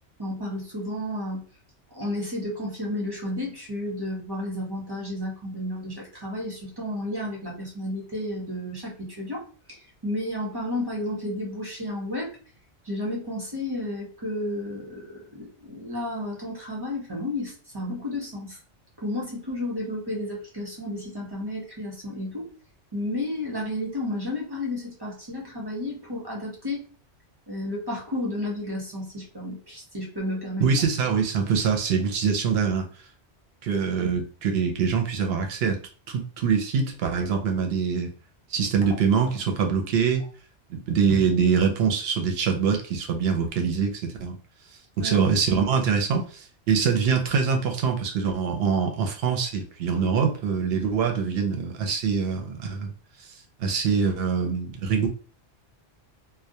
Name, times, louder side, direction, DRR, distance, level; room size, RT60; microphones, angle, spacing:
voice 1, 0.2-1.5 1.9-9.4 9.7-12.3 12.8-18.6 19.0-22.5 22.9-26.9 27.5-30.7 38.8-38.9 45.0-45.2, left 1 dB, 25° right, -4 dB, 0.6 m, -32 dB
voice 2, 30.6-32.9 33.6-35.8 36.1-38.1 38.5-40.3 40.7-44.4 45.0-52.9 53.6-55.1, right 6 dB, 65° right, 3 dB, 0.7 m, -24 dB
2.2 x 2.1 x 2.7 m, 0.39 s
omnidirectional pair, 1.2 m